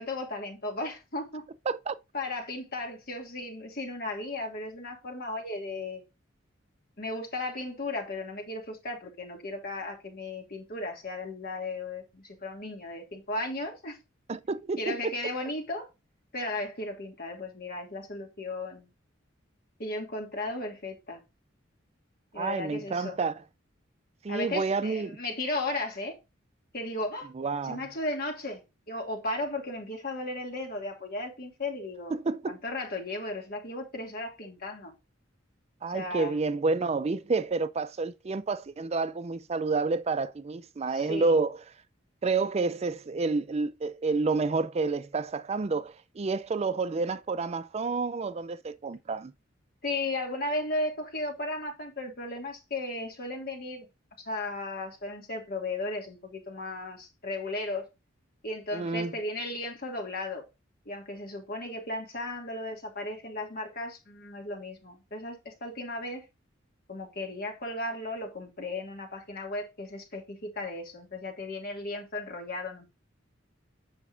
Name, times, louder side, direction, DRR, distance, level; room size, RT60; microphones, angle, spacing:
voice 1, 0.0-1.4 2.1-6.0 7.0-14.0 14.8-15.9 16.3-18.9 19.8-21.2 22.3-23.2 24.3-26.2 26.7-27.3 27.6-28.6 28.9-32.2 32.5-34.9 35.9-36.4 40.9-41.4 49.8-53.9 54.2-57.9 58.4-60.4 60.9-66.2 66.9-72.9, left 2 dB, 50° left, 2.5 m, -35 dB
voice 2, 14.3-15.1 22.4-23.3 24.2-25.2 27.4-27.8 32.1-32.6 35.8-41.6 42.2-49.3 58.7-59.1, right 4 dB, 35° right, 0.4 m, -29 dB
8.0 x 5.9 x 2.6 m
head